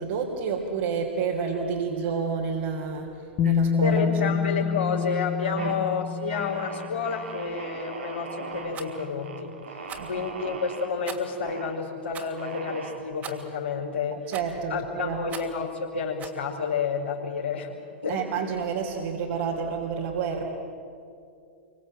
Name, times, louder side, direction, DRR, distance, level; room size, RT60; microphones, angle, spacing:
voice 1, 0.0-3.1 3.4-4.3 5.5-5.7 10.0-10.1 14.3-15.3 18.1-20.4, right 6 dB, 60° right, -2 dB, 3.6 m, -29 dB
Bass guitar, 3.4-7.3 8.5-8.6, left 7 dB, 35° left, 1.7 m, -27 dB
sound 1, 3.4-4.2 4.5-5.0 5.4-5.8 6.3-10.9 11.4-11.8 12.4-13.4, right 4 dB, 80° right, 3.4 m, -40 dB
voice 2, 3.8-14.3 14.7-17.7 18.0-18.2, left 5 dB, 80° left, -3 dB, 5.3 m, -30 dB
Rattle, 8.7-8.9 9.8-10.2 11.0-11.4 12.1-12.4 13.2-13.5 14.3-14.6 15.3-15.6 16.2-16.4, right 7 dB, 30° right, 2.8 m, -40 dB
28.0 x 24.5 x 7.8 m, 2.5 s
figure-of-eight pair, 100°, 6 cm